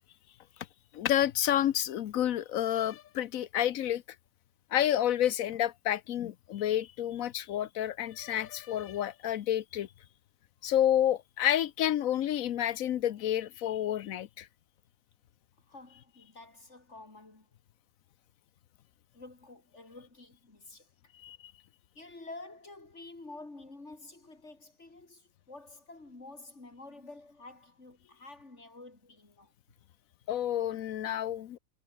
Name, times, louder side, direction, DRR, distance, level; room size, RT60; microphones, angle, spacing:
voice 1, 0.9-4.0 4.7-9.9 10.6-14.5 21.2-21.5 30.3-31.6, left 11 dB, 80° left, 1.2 m, -29 dB
voice 2, 15.7-17.5 19.1-21.1 21.9-29.5, left 2 dB, 55° left, 4.3 m, -49 dB
omnidirectional pair, 1.4 m